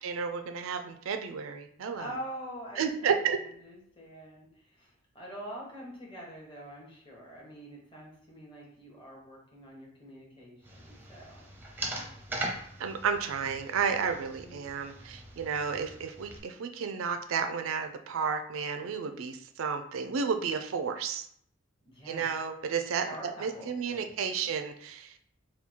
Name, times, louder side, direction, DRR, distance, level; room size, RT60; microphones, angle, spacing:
voice 1, 0.0-2.1 2.8-3.4 12.8-21.3 22.1-25.4, right 6 dB, 80° right, 7 dB, 0.4 m, -32 dB
voice 2, 1.9-10.6 10.8-11.4 14.0-14.7 21.8-22.3 23.0-24.4, equal, 25° left, -3 dB, 1.3 m, -45 dB
sound 1, 10.6-16.4, right 2 dB, 10° right, 0.6 m, -41 dB
3.6 x 2.3 x 4.4 m, 0.66 s
head